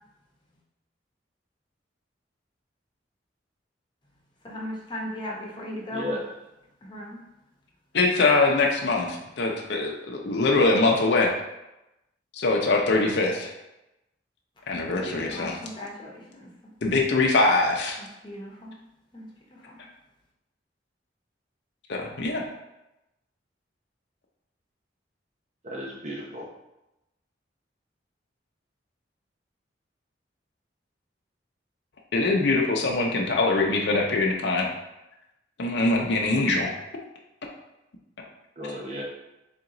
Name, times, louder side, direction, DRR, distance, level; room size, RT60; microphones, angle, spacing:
voice 1, 4.4-6.2 6.8-7.2 15.3-16.5 18.0-18.8 19.1-19.8, left 1 dB, 25° left, -3 dB, 0.9 m, -37 dB
voice 2, 5.9-6.2 15.0-15.3 25.6-26.5 38.6-39.0, left 1 dB, 40° right, -3 dB, 0.9 m, -34 dB
voice 3, 7.9-11.3 12.3-13.5 14.7-15.6 16.8-18.0 21.9-22.4 32.1-34.7 35.6-36.7, left 3 dB, 65° left, 0 dB, 0.6 m, -23 dB
3.5 x 3.0 x 3.8 m, 0.93 s
head